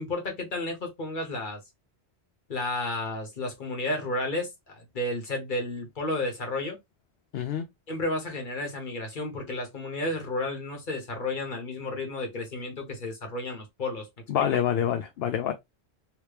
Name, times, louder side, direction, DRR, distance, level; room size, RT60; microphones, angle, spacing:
voice 1, 0.0-1.6 2.5-6.8 7.9-14.1 14.3-14.5, left 2 dB, 50° left, 1.3 m, -32 dB
voice 2, 7.3-7.6 14.3-15.5, left 9 dB, 70° left, 0.8 m, -26 dB
3.0 x 2.9 x 3.2 m
omnidirectional pair, 1.1 m